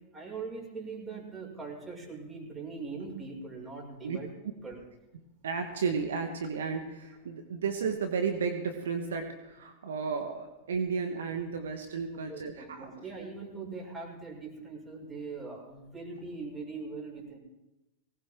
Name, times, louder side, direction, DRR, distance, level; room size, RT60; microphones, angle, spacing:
voice 1, 0.1-4.3 4.6-4.8 12.3-17.4, right 4 dB, 20° right, -2 dB, 6.0 m, -41 dB
voice 2, 5.4-12.9, right 5 dB, 75° right, 5 dB, 1.5 m, -33 dB
19.0 x 18.5 x 3.8 m, 0.98 s
hypercardioid pair, 95°, 0 cm